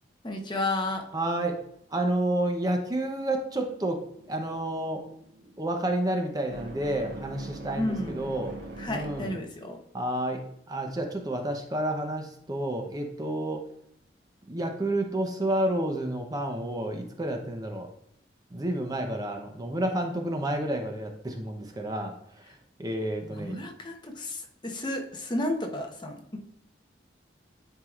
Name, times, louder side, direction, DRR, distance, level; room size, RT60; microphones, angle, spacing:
voice 1, 0.2-1.0 7.8-8.2 8.8-9.8 22.5-22.6 23.2-26.4, left 2 dB, 25° left, 2 dB, 0.9 m, -32 dB
voice 2, 1.1-1.6 1.9-4.0 4.3-5.0 5.6-8.5 8.9-9.4 9.9-13.6 14.5-17.9 18.5-22.1 22.8-23.5, right 1 dB, 20° right, 4 dB, 0.7 m, -30 dB
sound 1, 4.1-9.6, right 2 dB, 65° right, 2.2 m, -44 dB
10.5 x 4.7 x 2.4 m, 0.70 s
head